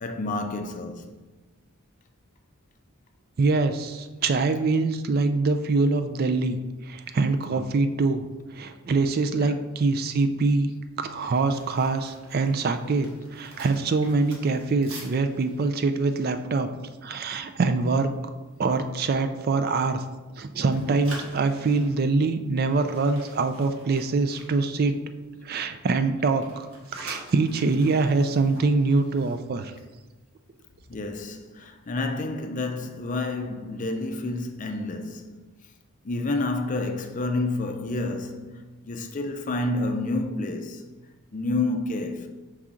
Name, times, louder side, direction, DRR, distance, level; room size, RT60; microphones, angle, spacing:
voice 1, 0.0-1.2 7.5-7.6 9.3-9.6 30.9-35.4 36.0-40.9 41.3-42.3, left 2 dB, 35° left, 0.5 m, -29 dB
voice 2, 3.4-6.6 6.8-10.7 11.0-18.1 18.6-20.0 20.4-25.0 25.4-26.7 26.9-29.7, right 3 dB, 45° right, 0.4 m, -24 dB
sound 1, 11.2-17.4 17.7-17.9 18.3-18.6 19.1-20.4 20.6-25.4 25.6-30.2 30.4-30.7, right 1 dB, 70° right, 1.5 m, -47 dB
5.7 x 4.8 x 3.7 m
head